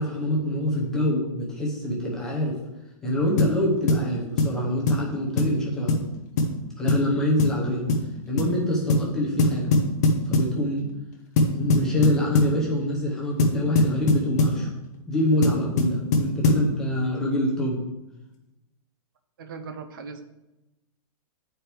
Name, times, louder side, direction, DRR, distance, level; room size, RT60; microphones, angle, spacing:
voice 1, 0.0-2.6 3.0-5.9 6.8-7.9 8.3-9.7 10.2-10.9 11.5-14.7 15.1-17.8, left 1 dB, 5° left, -6 dB, 0.8 m, -25 dB
sound 1, 3.4-3.6 3.9-4.1 4.4-4.6 4.9-5.0 5.4-5.6 5.9-6.1 6.4-6.5 6.9-7.1 7.4-7.6 7.9-8.1 8.4-8.5 8.9-9.1 9.4-10.5 11.4-12.6 13.4-14.6 15.4-16.7, left 2 dB, 30° left, 0.7 m, -21 dB
voice 2, 19.4-20.2, right 5 dB, 35° right, 8 dB, 0.6 m, -38 dB
8.7 x 4.4 x 3.4 m, 0.98 s
hypercardioid pair, 180°, 18 cm